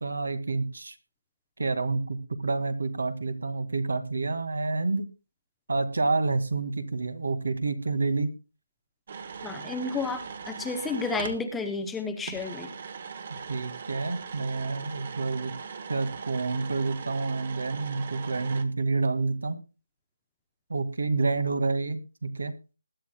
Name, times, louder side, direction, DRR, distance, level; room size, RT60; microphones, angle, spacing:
voice 1, 0.0-1.0 1.6-5.1 5.7-8.3 13.5-15.5 15.9-19.6 20.7-22.6, right 3 dB, 70° right, 10 dB, 1.9 m, -28 dB
sound 1, 9.1-11.4 12.3-18.6, right 6 dB, 35° right, 1.2 m, -40 dB
voice 2, 9.4-12.7, left 4 dB, 5° left, 6 dB, 0.7 m, -31 dB
20.5 x 10.5 x 2.2 m, 0.32 s
hypercardioid pair, 175°, 0 cm